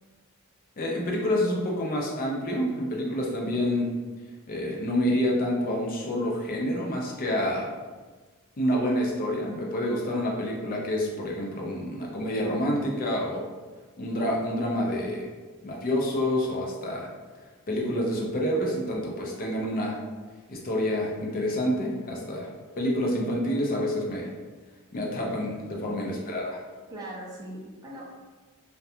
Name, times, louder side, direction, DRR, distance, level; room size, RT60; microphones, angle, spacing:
voice 1, 0.8-4.0 4.5-7.7 8.6-13.5 14.0-15.3 15.6-17.1 17.7-20.0 20.5-22.5 22.8-24.3 24.9-26.6, left 1 dB, 40° left, -1 dB, 0.4 m, -28 dB
voice 2, 25.8-26.1 26.9-28.0, right 1 dB, 15° right, -4 dB, 0.4 m, -40 dB
2.7 x 2.2 x 2.3 m, 1.4 s
head